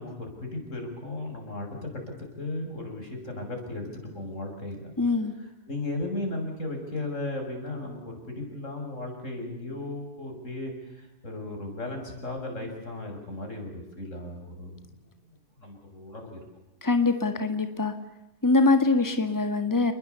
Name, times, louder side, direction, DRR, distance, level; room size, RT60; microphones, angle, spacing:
voice 1, 0.0-4.9 5.4-14.9 15.6-16.4, left 2 dB, 85° left, 3 dB, 7.4 m, -36 dB
voice 2, 5.0-5.3 16.8-17.9 18.4-19.9, left 3 dB, 15° left, 8 dB, 1.9 m, -23 dB
29.0 x 21.0 x 8.3 m, 0.98 s
omnidirectional pair, 1.3 m